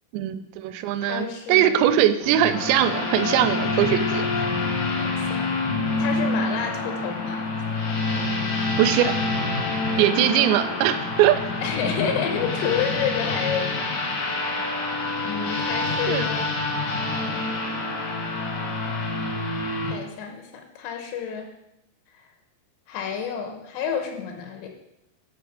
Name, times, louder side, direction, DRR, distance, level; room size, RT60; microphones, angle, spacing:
voice 1, 0.1-4.3 8.8-9.1 10.0-11.4 16.1-16.3, right 11 dB, 90° right, 11 dB, 2.8 m, -21 dB
voice 2, 1.0-1.8 4.9-5.5 6.0-7.5 9.8-10.0 11.6-13.9 15.2-16.5 19.9-21.5 22.9-24.7, left 7 dB, 85° left, 4 dB, 3.1 m, -30 dB
sound 1, 2.2-19.9, left 3 dB, 65° left, 1.9 m, -27 dB
6.8 x 5.9 x 5.1 m, 0.87 s
omnidirectional pair, 5.0 m